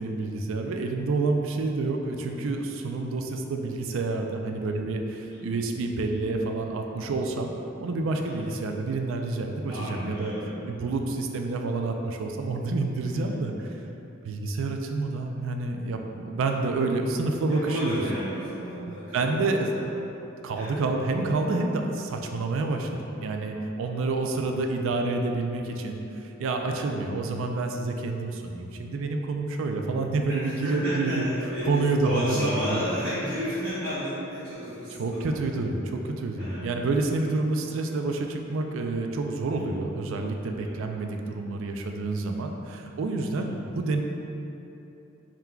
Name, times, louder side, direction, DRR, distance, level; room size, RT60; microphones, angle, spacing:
voice 1, 0.0-7.5 7.8-10.3 10.7-13.7 14.2-17.9 19.1-19.7 20.4-26.0 26.4-31.3 31.7-32.9 35.0-44.0, right 3 dB, 65° right, 3 dB, 0.3 m, -28 dB
voice 2, 8.2-8.5 9.7-10.6 13.0-13.3 17.5-19.9 20.5-20.7 26.6-26.9 30.3-35.3 36.4-36.7 37.0-37.2 39.5-39.8 40.6-40.7 43.3-43.4, equal, 45° right, -15 dB, 1.2 m, -33 dB
4.3 x 3.7 x 2.3 m, 2.9 s
head